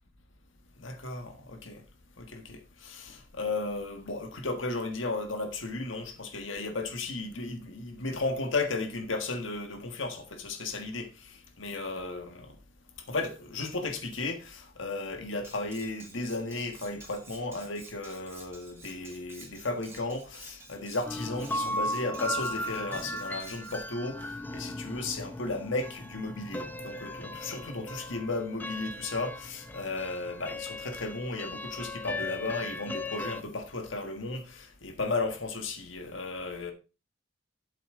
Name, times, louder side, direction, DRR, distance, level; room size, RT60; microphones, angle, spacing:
voice 1, 0.8-1.8 2.2-12.5 13.1-36.7, left 3 dB, 80° left, 1.6 m, -35 dB
Cutlery silverware, 15.4-23.8, right 3 dB, 15° right, 2.4 m, -51 dB
sound 1, 21.1-33.4, left 1 dB, 10° left, 0.6 m, -37 dB
8.3 x 8.0 x 3.7 m
head